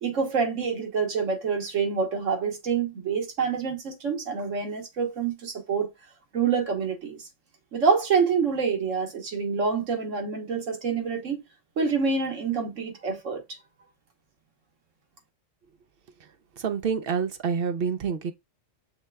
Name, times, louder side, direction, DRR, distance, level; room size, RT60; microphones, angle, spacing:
voice 1, 0.0-5.9 6.3-7.2 7.7-11.4 11.8-13.6, right 5 dB, 90° right, 1.4 m, -27 dB
voice 2, 16.6-18.3, right 6 dB, 60° right, 0.7 m, -27 dB
6.5 x 3.2 x 2.2 m
omnidirectional pair, 1.3 m